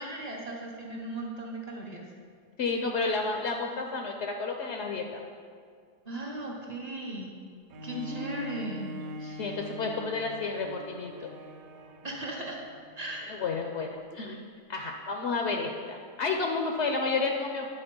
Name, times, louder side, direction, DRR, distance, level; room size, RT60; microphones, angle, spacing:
voice 1, 0.0-2.0 6.1-7.3 7.8-8.9 12.0-12.6 13.0-13.3, right 1 dB, 45° right, -1 dB, 0.5 m, -37 dB
voice 2, 2.6-5.2 7.9-8.2 9.2-11.3 13.3-14.4 14.7-17.7, left 4 dB, 70° left, 2 dB, 0.6 m, -31 dB
Bowed string instrument, 7.7-13.3 14.0-14.1, right 1 dB, 65° right, 0.9 m, -43 dB
10.0 x 4.0 x 5.2 m, 2.1 s
omnidirectional pair, 1.8 m